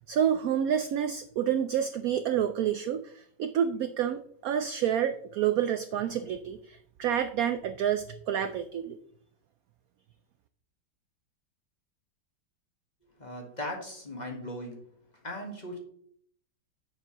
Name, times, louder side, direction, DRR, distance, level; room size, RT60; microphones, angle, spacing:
voice 1, 0.1-9.0, right 9 dB, 75° right, 10 dB, 0.8 m, -29 dB
voice 2, 13.2-14.8 15.2-15.8, left 1 dB, 25° left, 1 dB, 1.4 m, -38 dB
9.9 x 7.1 x 3.0 m, 0.65 s
omnidirectional pair, 2.0 m